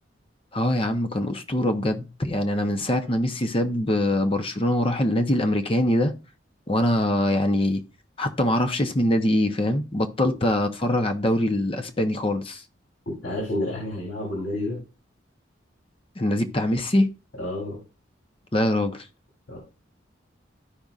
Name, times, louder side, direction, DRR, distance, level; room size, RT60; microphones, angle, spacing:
voice 1, 0.5-6.2 6.7-7.8 8.2-12.6 16.2-17.1 18.5-19.1, left 1 dB, 30° left, 0.7 m, -23 dB
voice 2, 13.2-14.8 17.3-17.8 19.5-19.6, left 1 dB, 65° left, 3.5 m, -30 dB
13.0 x 5.2 x 2.4 m
head